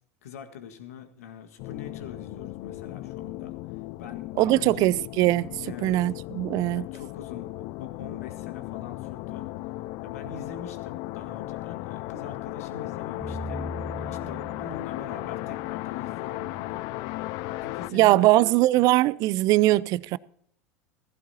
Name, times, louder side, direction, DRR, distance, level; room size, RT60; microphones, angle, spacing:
voice 1, 0.2-3.6 4.0-4.9 5.6-6.1 6.7-9.5 10.0-13.6 13.9-16.8 17.5-18.9, left 7 dB, 70° left, 1.8 m, -43 dB
sound 1, 1.6-17.9, left 18 dB, 50° left, 0.4 m, -36 dB
voice 2, 4.4-5.5 5.8-6.9 17.9-20.2, right 17 dB, 45° right, 0.5 m, -21 dB
sound 2, 13.2-16.3, right 1 dB, 15° left, 1.4 m, -40 dB
17.5 x 15.5 x 2.9 m
figure-of-eight pair, 80°, 8 cm